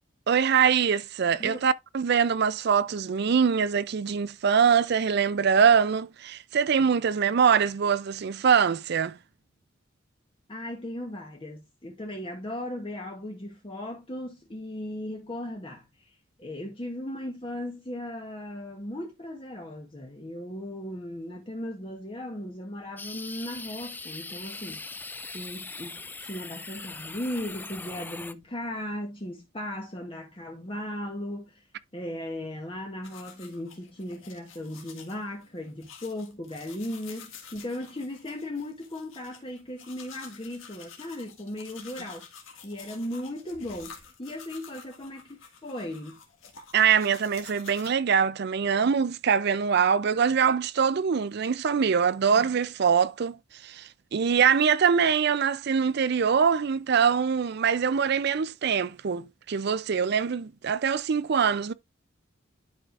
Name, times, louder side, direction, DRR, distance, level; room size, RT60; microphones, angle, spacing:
voice 1, 0.3-9.2 46.7-53.4 53.6-61.7, right 7 dB, 55° right, 0.4 m, -23 dB
voice 2, 10.5-16.1 16.4-25.0 25.3-31.7 31.9-42.3 42.6-46.2 52.4-52.5, left 1 dB, 25° left, 1.0 m, -37 dB
sound 1, 23.0-28.3, left 3 dB, 10° left, 0.3 m, -40 dB
sound 2, 33.0-47.9, left 6 dB, 80° left, 1.7 m, -49 dB
11.0 x 4.9 x 2.5 m
head